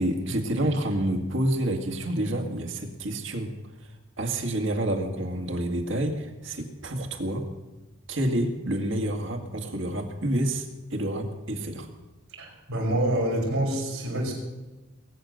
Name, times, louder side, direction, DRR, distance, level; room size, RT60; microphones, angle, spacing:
voice 1, 0.0-3.5 4.2-7.4 8.1-11.9, right 1 dB, 65° right, 4 dB, 2.1 m, -28 dB
voice 2, 12.4-14.3, right 1 dB, 85° right, -3 dB, 5.3 m, -27 dB
20.5 x 9.2 x 6.6 m, 1.1 s
head